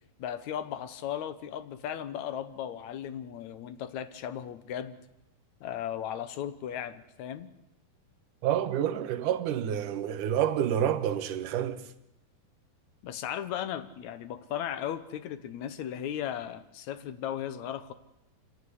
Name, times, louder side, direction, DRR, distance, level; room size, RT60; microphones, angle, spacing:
voice 1, 0.2-5.0 5.6-7.5 13.0-17.9, left 10 dB, 65° left, 1.9 m, -36 dB
voice 2, 8.4-11.8, right 10 dB, 65° right, 2.6 m, -28 dB
26.0 x 17.0 x 9.6 m
omnidirectional pair, 4.5 m